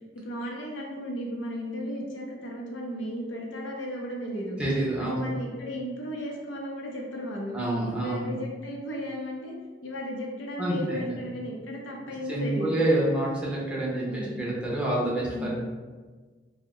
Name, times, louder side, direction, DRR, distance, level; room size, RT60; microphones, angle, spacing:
voice 1, 0.1-4.6 5.0-7.6 7.9-9.5 9.8-12.8 13.8-14.5 15.3-15.5, equal, 85° left, -1 dB, 0.6 m, -35 dB
voice 2, 4.6-5.3 7.5-8.3 10.6-11.2 12.0-15.5, right 1 dB, 5° right, -6 dB, 0.6 m, -28 dB
2.6 x 2.1 x 3.6 m, 1.4 s
head